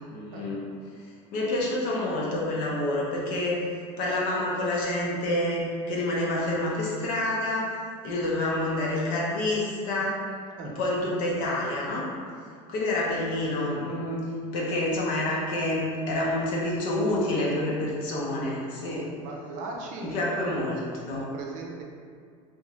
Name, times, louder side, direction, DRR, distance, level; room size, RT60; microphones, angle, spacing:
voice 1, 0.1-0.6 1.3-3.6 4.0-7.7 8.0-10.2 10.6-12.0 12.7-14.3 14.5-19.1 20.0-20.8 21.1-21.3, left 1 dB, 55° left, -4 dB, 0.8 m, -28 dB
voice 2, 19.2-20.4 21.2-21.8, right 3 dB, 50° right, -1 dB, 0.5 m, -38 dB
3.5 x 2.6 x 3.0 m, 2.2 s
cardioid pair, 155°, 16 cm